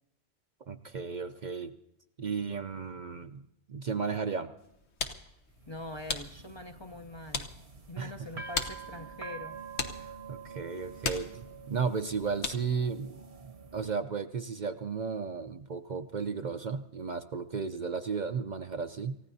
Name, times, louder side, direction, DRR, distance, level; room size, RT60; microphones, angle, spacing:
voice 1, 0.7-1.7 2.2-3.4 3.7-4.5 8.0-8.4 10.0-19.2, right 5 dB, 50° right, 0.7 m, -34 dB
sound 1, 4.6-12.9, left 4 dB, 80° left, 1.4 m, -40 dB
sound 2, 5.5-13.9, right 5 dB, 75° right, 1.5 m, -47 dB
voice 2, 5.7-7.5 7.9-9.6, left 2 dB, 30° left, 0.7 m, -43 dB
28.0 x 15.5 x 2.7 m
omnidirectional pair, 1.1 m